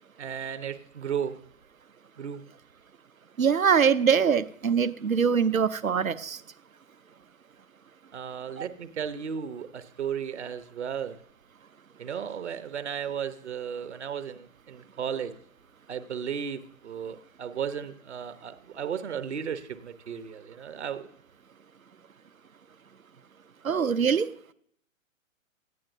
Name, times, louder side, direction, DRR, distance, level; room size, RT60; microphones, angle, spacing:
voice 1, 0.2-1.3 2.2-2.4 8.1-11.2 12.0-15.3 15.9-21.1, right 8 dB, 55° right, 11 dB, 1.0 m, -34 dB
voice 2, 3.4-6.4 8.6-8.7 23.6-24.3, right 6 dB, 80° right, 14 dB, 0.8 m, -23 dB
17.5 x 12.0 x 2.7 m, 0.67 s
figure-of-eight pair, 125°, 41 cm